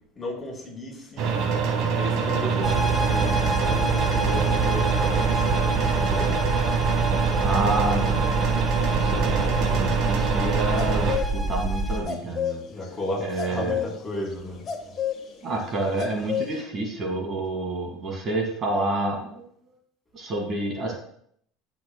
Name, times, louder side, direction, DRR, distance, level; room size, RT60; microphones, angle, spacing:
voice 1, 0.2-1.4 1.9-6.5 12.7-14.7, left 2 dB, 15° left, -4 dB, 3.9 m, -34 dB
sound 1, 1.2-11.2, right 5 dB, 65° right, 1.9 m, -24 dB
sound 2, 2.6-12.0, right 2 dB, 15° right, 1.8 m, -27 dB
voice 2, 7.4-8.4 8.8-12.6 13.2-13.7 15.4-19.4 20.1-20.9, right 2 dB, 35° right, 0 dB, 2.2 m, -29 dB
sound 3, 10.8-11.4 11.6-11.7 11.9-16.6, left 9 dB, 40° left, 1.6 m, -30 dB
16.0 x 6.0 x 2.3 m, 0.67 s
supercardioid pair, 125°, 0 cm